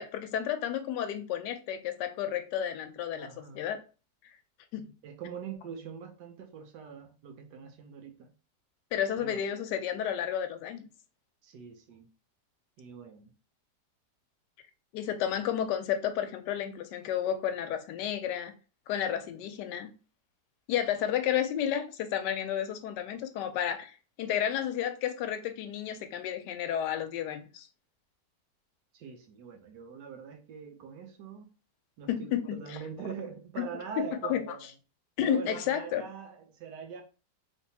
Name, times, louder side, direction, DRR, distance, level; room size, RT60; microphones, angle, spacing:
voice 1, 0.0-3.8 4.7-4.9 8.9-10.9 14.9-18.5 18.9-19.9 20.7-27.7 32.1-32.8 33.6-33.7 34.0-34.5 35.2-36.0, left 9 dB, 80° left, 1.2 m, -32 dB
voice 2, 3.2-3.6 5.0-8.3 9.2-9.4 11.4-12.1 12.8-13.3 28.9-31.5 32.0-34.7 35.2-37.0, right 7 dB, 75° right, 1.3 m, -43 dB
3.3 x 3.3 x 2.7 m
omnidirectional pair, 1.8 m